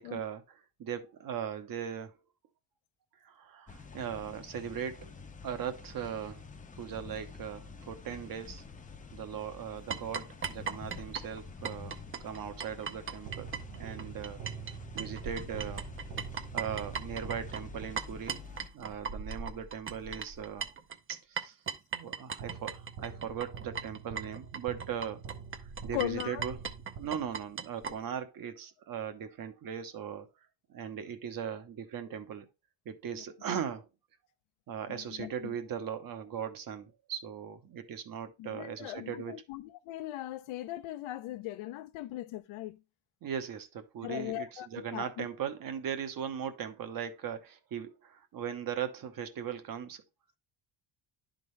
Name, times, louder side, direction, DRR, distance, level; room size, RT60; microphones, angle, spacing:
voice 1, 0.0-2.1 3.2-5.1 5.4-6.5 6.8-8.6 9.1-14.4 14.9-15.9 16.5-20.7 21.1-21.6 21.9-25.2 25.8-26.6 27.0-30.3 30.7-32.5 32.8-33.9 34.7-39.4 43.2-50.0, right 8 dB, 45° right, 1.0 m, -39 dB
sound 1, 3.7-18.7, left 4 dB, 15° left, 0.6 m, -48 dB
sound 2, 9.9-14.7 15.0-27.9, right 6 dB, 25° right, 0.6 m, -38 dB
sound 3, 13.3-18.4 22.4-27.6, right 6 dB, 85° right, 1.3 m, -46 dB
voice 2, 25.9-26.4 33.1-33.2 34.9-35.5 38.4-42.8 44.0-45.3, left 15 dB, 85° left, 0.8 m, -39 dB
11.0 x 3.9 x 3.2 m
cardioid pair, 150°, 47 cm